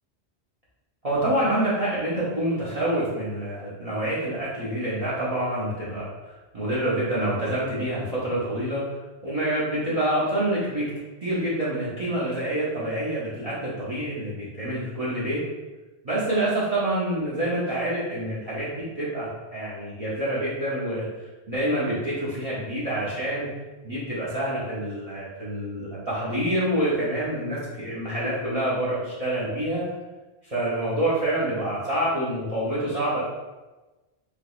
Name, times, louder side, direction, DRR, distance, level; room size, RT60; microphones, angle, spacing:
voice 1, 1.0-10.9 11.2-15.4 16.0-23.5 23.8-29.8 30.4-33.2, right 1 dB, 40° right, -8 dB, 0.7 m, -27 dB
3.5 x 3.0 x 2.3 m, 1.2 s
omnidirectional pair, 1.1 m